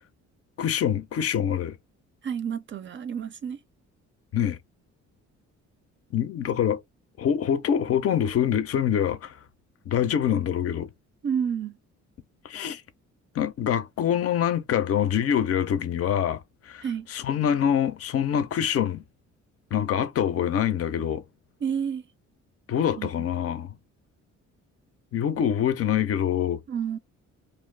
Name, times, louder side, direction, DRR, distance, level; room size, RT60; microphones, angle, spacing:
voice 1, 0.6-1.8 4.3-4.6 6.1-6.8 7.2-9.4 9.9-10.9 12.4-12.8 13.3-16.4 16.7-19.0 19.7-21.2 22.7-23.7 25.1-26.6, left 9 dB, 50° left, 0.5 m, -25 dB
voice 2, 2.2-3.6 11.2-11.8 16.8-17.1 21.6-22.0 23.0-23.3 26.7-27.0, right 7 dB, 40° right, 0.4 m, -30 dB
2.5 x 2.2 x 3.2 m
cardioid pair, 90°, 30 cm